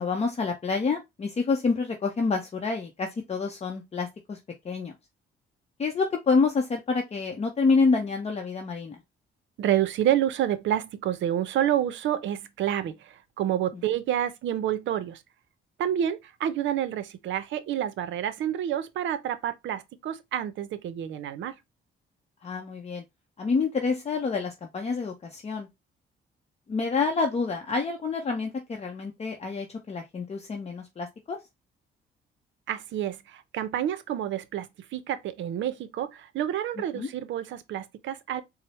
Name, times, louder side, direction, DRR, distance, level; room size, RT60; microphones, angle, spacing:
voice 1, 0.0-4.4 4.6-5.0 5.8-9.0 22.4-23.0 23.4-25.7 26.7-31.4 36.9-37.1, left 4 dB, 35° left, 0.6 m, -27 dB
voice 2, 9.6-15.2 15.8-21.5 32.7-38.4, right 11 dB, 70° right, 0.5 m, -29 dB
4.3 x 2.0 x 3.0 m
cardioid pair, 90°, 20 cm